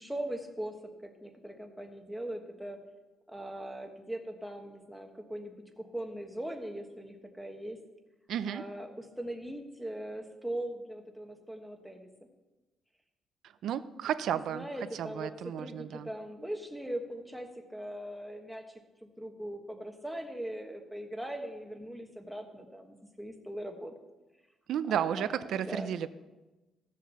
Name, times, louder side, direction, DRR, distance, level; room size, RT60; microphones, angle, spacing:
voice 1, 0.0-2.8 3.3-7.8 8.5-12.1 14.3-15.3 15.6-23.9 24.9-25.3 25.6-25.9, right 1 dB, ahead, 3 dB, 1.3 m, -40 dB
voice 2, 8.3-8.6 13.4-14.7 14.9-16.1 24.7-26.1, right 9 dB, 60° right, 13 dB, 0.6 m, -33 dB
15.5 x 7.5 x 6.9 m, 1.1 s
cardioid pair, 175°, 0 cm